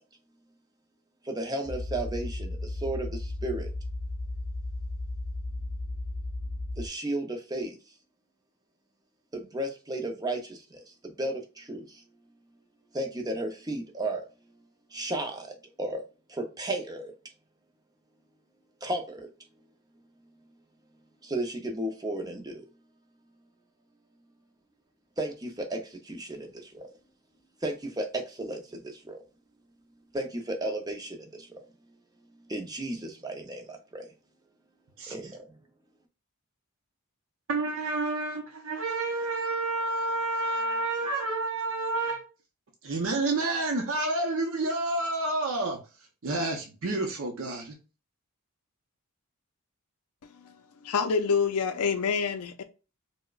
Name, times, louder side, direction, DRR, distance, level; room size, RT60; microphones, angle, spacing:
voice 1, 1.3-3.1 3.4-3.7 6.8-7.8 9.3-10.6 11.2-11.8 12.9-14.2 14.9-15.5 15.8-16.0 16.3-17.1 18.8-19.2 21.2-22.6 25.2-25.8 26.1-26.5 26.7-26.9 27.6-28.8 29.1-29.2 30.1-31.5 32.5-33.6 33.9-34.1 35.1-35.3, right 1 dB, 15° right, 0.5 m, -33 dB
sound 1, 1.7-6.9, left 2 dB, 45° left, 0.7 m, -35 dB
voice 2, 37.5-42.2 42.8-45.8 46.2-47.7, right 2 dB, 65° right, 0.6 m, -29 dB
voice 3, 50.2-50.5 50.8-52.6, left 5 dB, 85° left, 0.4 m, -27 dB
4.7 x 2.1 x 2.3 m
head